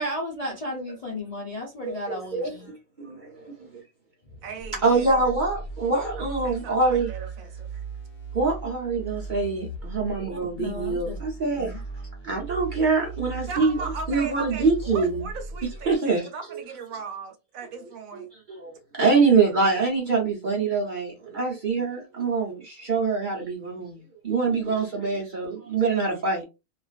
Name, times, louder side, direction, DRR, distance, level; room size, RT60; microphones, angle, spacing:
voice 1, 0.0-2.7 10.3-11.2 11.5-11.8, left 1 dB, 45° left, 0.5 m, -34 dB
voice 2, 1.8-3.8 4.8-7.1 8.3-11.8 12.2-15.2 15.9-16.6 18.1-26.4, right 4 dB, 50° right, 0.6 m, -25 dB
voice 3, 4.4-5.2 6.2-7.7 13.5-18.3, right 5 dB, 70° right, 1.0 m, -38 dB
sound 1, 4.6-16.0, right 3 dB, 65° left, 1.0 m, -38 dB
2.4 x 2.4 x 2.3 m
omnidirectional pair, 1.5 m